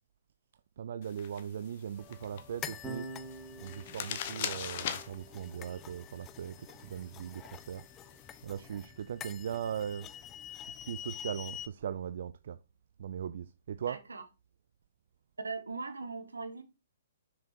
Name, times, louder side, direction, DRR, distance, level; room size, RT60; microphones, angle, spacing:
voice 1, 0.8-3.1 3.6-7.8 8.4-10.1 10.6-12.6 13.0-14.0, right 8 dB, 60° right, 0.5 m, -39 dB
sound 1, 1.0-8.4, left 9 dB, 50° left, 1.3 m, -43 dB
sound 2, 2.0-11.7, left 9 dB, 20° left, 0.7 m, -47 dB
Electric guitar / Bass guitar, 2.8-9.2, right 2 dB, 10° right, 2.2 m, -50 dB
voice 2, 13.9-14.3 15.4-16.6, right 4 dB, 85° right, 1.7 m, -40 dB
7.1 x 6.4 x 4.4 m
hypercardioid pair, 130°, 0 cm